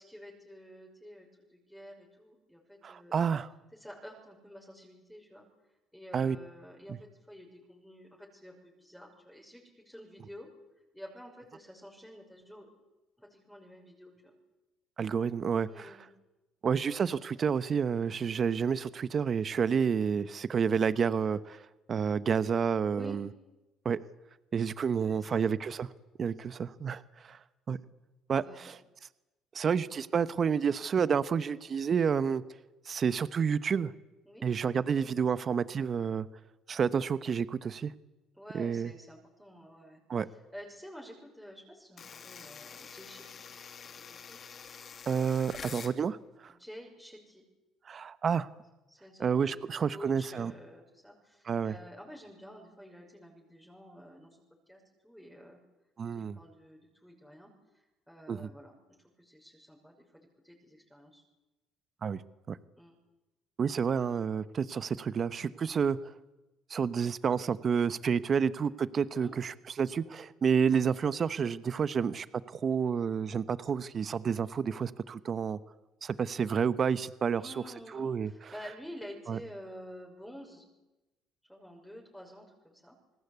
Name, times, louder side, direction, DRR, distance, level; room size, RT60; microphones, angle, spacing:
voice 1, 0.0-3.3 3.7-5.4 5.9-10.5 10.9-12.7 13.2-14.3 15.7-16.1 18.2-18.4 22.9-23.2 25.0-25.4 28.3-28.7 34.3-34.4 38.4-43.5 43.8-44.4 46.6-47.4 48.9-54.4 54.7-55.6 56.1-58.8 59.2-61.2 62.8-63.0 69.1-69.3 77.4-80.6 81.5-83.0, equal, ahead, -1 dB, 6.1 m, -50 dB
voice 2, 2.8-3.5 6.1-6.4 6.9-7.0 15.0-16.0 16.6-23.3 23.8-24.0 24.5-25.9 26.2-27.4 27.7-27.8 28.3-28.8 29.5-32.4 32.9-33.9 34.4-36.3 36.7-37.9 38.5-38.9 40.1-40.3 45.1-46.5 47.9-48.5 49.2-50.5 51.5-51.7 56.0-56.4 58.3-58.5 62.0-62.2 62.5-62.6 63.6-66.1 66.7-75.6 76.0-77.5 77.9-78.5 79.3-79.4, right 6 dB, 45° right, 15 dB, 1.0 m, -30 dB
sound 1, 42.0-46.0, left 6 dB, 45° left, 2.4 m, -47 dB
28.5 x 19.5 x 8.3 m, 1.0 s
supercardioid pair, 70°, 0 cm